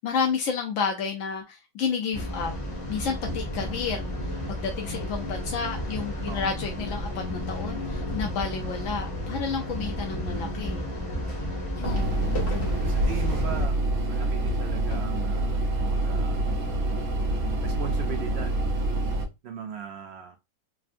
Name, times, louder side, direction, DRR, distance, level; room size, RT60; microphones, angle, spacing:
voice 1, 0.0-2.5 2.9-10.8 11.8-12.9, left 6 dB, 65° left, 0.8 m, -31 dB
sound 1, 2.1-13.7, left 1 dB, 25° left, 0.8 m, -32 dB
sound 2, 11.8-16.2 17.0-17.1 17.3-17.5 18.0-18.1, left 3 dB, 50° left, 1.0 m, -43 dB
sound 3, 11.8-19.3, right 1 dB, 60° right, 0.8 m, -26 dB
voice 2, 12.8-13.8 14.1-16.5 17.6-18.5 19.4-20.4, right 7 dB, 85° right, 0.5 m, -38 dB
3.4 x 2.0 x 2.5 m
omnidirectional pair, 1.6 m